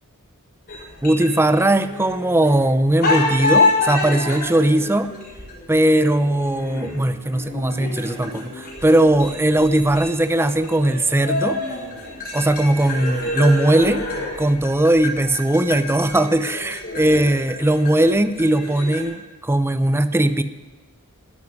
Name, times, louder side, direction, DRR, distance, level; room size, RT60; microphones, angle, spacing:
sound 1, 0.7-2.6 3.0-19.0, left 3 dB, 45° left, 4.8 m, -27 dB
voice 1, 1.0-5.1 5.7-11.6 12.3-14.0 14.4-20.4, right 1 dB, 10° right, 11 dB, 0.6 m, -19 dB
12.5 x 9.8 x 9.6 m, 1.3 s
head